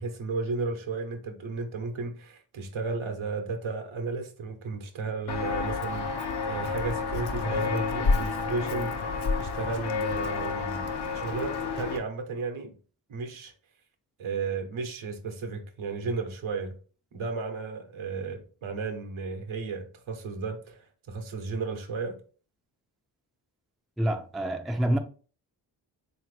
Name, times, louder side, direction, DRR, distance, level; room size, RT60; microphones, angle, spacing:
voice 1, 0.0-10.9 11.1-12.8 13.1-13.5 14.2-16.7 17.1-22.2, right 4 dB, 75° right, 1.0 m, -34 dB
Walk footsteps, 5.3-12.0, left 4 dB, 55° left, 0.8 m, -29 dB
voice 2, 24.0-25.0, right 1 dB, ahead, 0.4 m, -27 dB
3.6 x 2.8 x 3.2 m
cardioid pair, 45°, 48 cm